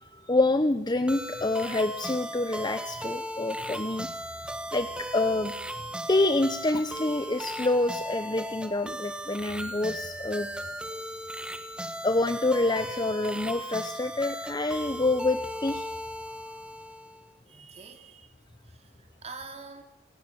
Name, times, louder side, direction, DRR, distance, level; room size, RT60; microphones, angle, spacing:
voice 1, 0.0-4.1 4.7-5.5 6.1-10.5 12.0-15.9, left 2 dB, 20° left, 10 dB, 0.7 m, -27 dB
sound 1, 1.1-17.2, equal, 5° right, 1.6 m, -37 dB
voice 2, 17.5-18.3 18.6-19.8, right 4 dB, 35° right, 5 dB, 3.0 m, -45 dB
29.0 x 17.5 x 6.9 m, 0.93 s
head